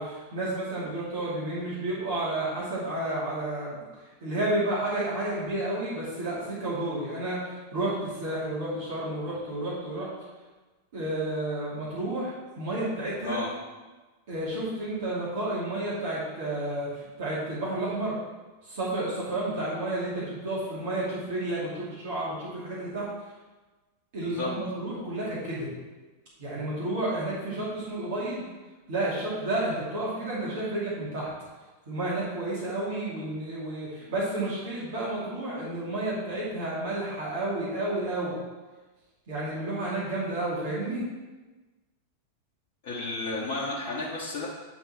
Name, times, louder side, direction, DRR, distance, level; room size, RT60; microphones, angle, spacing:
voice 1, 0.0-10.1 10.9-13.4 14.3-18.2 18.6-23.1 24.1-25.7 26.4-28.4 28.9-31.3 31.9-38.4 39.3-41.0, right 1 dB, 55° right, -7 dB, 2.5 m, -31 dB
voice 2, 42.8-44.5, left 2 dB, 50° left, -5 dB, 1.2 m, -32 dB
9.5 x 3.9 x 4.4 m, 1.2 s
figure-of-eight pair, 90°, 0 cm